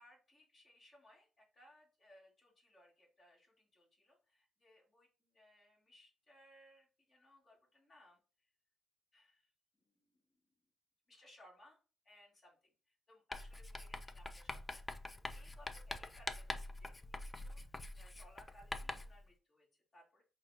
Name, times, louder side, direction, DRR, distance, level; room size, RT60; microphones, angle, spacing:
voice 1, 0.0-8.2 9.1-9.5 9.8-10.4 11.1-11.8 12.0-15.0 15.3-20.2, left 1 dB, 35° left, -3 dB, 2.2 m, -65 dB
Writing, 13.3-19.2, left 2 dB, 20° left, 0.4 m, -45 dB
5.6 x 2.4 x 2.8 m, 0.35 s
cardioid pair, 90°, 0 cm